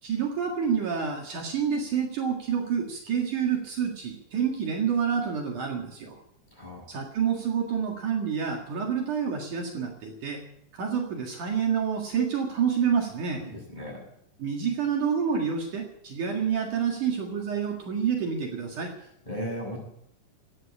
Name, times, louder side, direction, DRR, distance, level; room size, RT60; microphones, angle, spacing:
voice 1, 0.0-6.2 6.9-10.4 10.7-13.4 14.4-18.9, right 7 dB, 65° right, 1 dB, 3.2 m, -28 dB
voice 2, 13.4-14.0 19.3-19.8, equal, 10° left, -2 dB, 7.1 m, -36 dB
14.5 x 9.6 x 9.9 m, 0.73 s
omnidirectional pair, 4.0 m